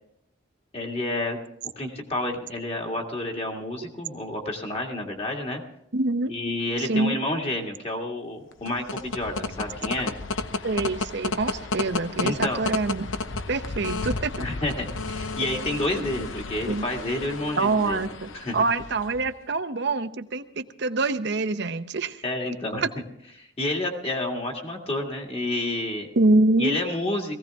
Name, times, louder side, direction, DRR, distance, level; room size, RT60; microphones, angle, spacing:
voice 1, 0.7-1.4 1.8-5.6 6.3-10.1 12.2-12.6 14.4-18.0 18.3-18.6 22.2-22.8 23.4-26.1 26.6-27.4, left 1 dB, 30° left, 1 dB, 2.0 m, -29 dB
voice 2, 5.9-6.3 6.8-7.2 10.6-13.1 13.5-14.3 16.7-16.8 17.6-22.2 22.8-22.9 26.2-26.8, right 2 dB, 60° right, 10 dB, 0.8 m, -25 dB
sound 1, 8.5-19.3, left 3 dB, 80° left, 0.8 m, -32 dB
19.0 x 16.0 x 3.5 m, 0.74 s
head